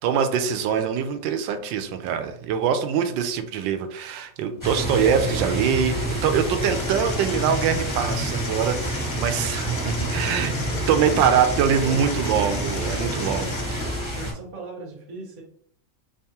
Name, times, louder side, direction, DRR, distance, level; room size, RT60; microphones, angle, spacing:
voice 1, 0.0-6.0 6.2-10.5 10.9-13.5, right 7 dB, 80° right, 8 dB, 1.2 m, -23 dB
sound 1, 4.6-14.3, equal, 15° left, 0.6 m, -28 dB
sound 2, 6.6-13.6, left 6 dB, 65° left, 1.0 m, -38 dB
voice 2, 10.7-11.2 11.7-12.0 13.0-13.5 13.8-15.4, right 3 dB, 50° right, -2 dB, 0.5 m, -38 dB
3.5 x 3.5 x 2.8 m, 0.65 s
omnidirectional pair, 2.1 m